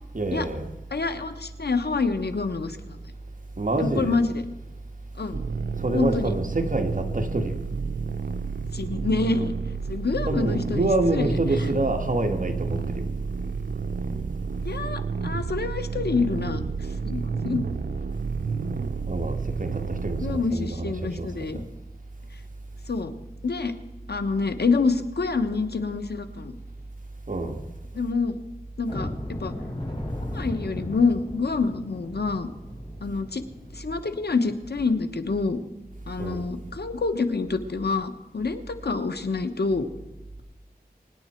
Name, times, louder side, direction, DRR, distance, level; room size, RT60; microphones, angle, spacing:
voice 1, 0.1-0.7 3.6-4.2 5.8-7.6 10.2-13.0 19.1-21.6 27.3-27.6 36.2-36.4, right 2 dB, 55° right, 1.9 m, -27 dB
voice 2, 0.9-3.0 3.8-4.4 5.1-5.4 5.9-6.3 8.7-9.5 9.9-11.3 14.6-16.6 17.1-17.6 20.2-21.6 22.9-23.1 23.4-23.7 24.1-26.6 27.9-28.3 28.8-29.5 30.3-32.5 33.0-33.4 33.7-35.6 36.1-39.9, left 4 dB, 85° left, 1.1 m, -27 dB
sound 1, 5.3-20.4, right 5 dB, 80° right, 0.7 m, -30 dB
sound 2, 28.9-35.6 36.0-36.1 36.5-36.7 37.2-37.3, left 1 dB, 30° left, 5.6 m, -37 dB
24.0 x 10.0 x 4.5 m
wide cardioid pair, 60°, 16 cm